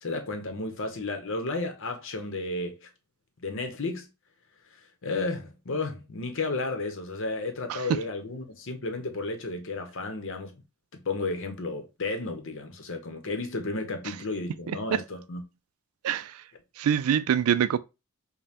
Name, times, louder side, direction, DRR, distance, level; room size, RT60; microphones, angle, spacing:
voice 1, 0.0-2.9 3.4-4.1 5.0-10.5 10.9-15.4, left 3 dB, 60° left, 0.8 m, -33 dB
voice 2, 16.8-17.8, right 9 dB, 75° right, 0.3 m, -24 dB
5.2 x 2.2 x 2.7 m
head